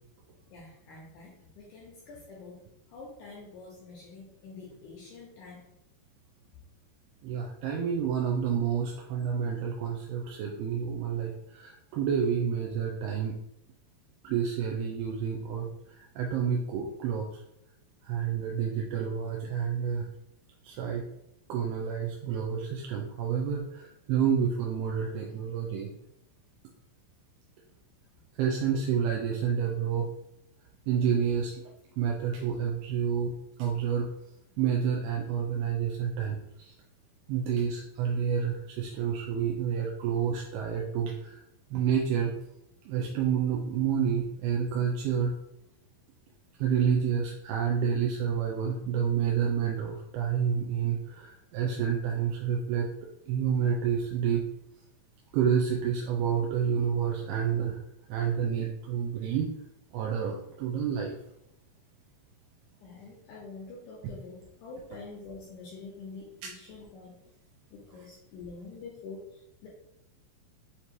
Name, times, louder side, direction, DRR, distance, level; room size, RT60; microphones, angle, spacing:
voice 1, 0.5-2.7 2.9-5.6 62.8-67.2 67.7-69.7, left 3 dB, 80° left, -4 dB, 1.9 m, -46 dB
voice 2, 7.2-13.4 14.2-15.7 16.0-17.3 18.0-20.1 20.6-21.0 21.5-25.9 28.4-30.1 30.9-31.5 32.0-33.3 33.6-34.1 34.6-36.4 36.7-36.8 37.3-41.4 41.7-42.3 42.9-45.3 46.6-52.9 53.3-54.4 55.3-57.8 58.1-59.5 59.9-61.2, right 7 dB, 85° right, -1 dB, 2.5 m, -29 dB
6.7 x 2.7 x 2.9 m, 0.81 s
omnidirectional pair, 4.4 m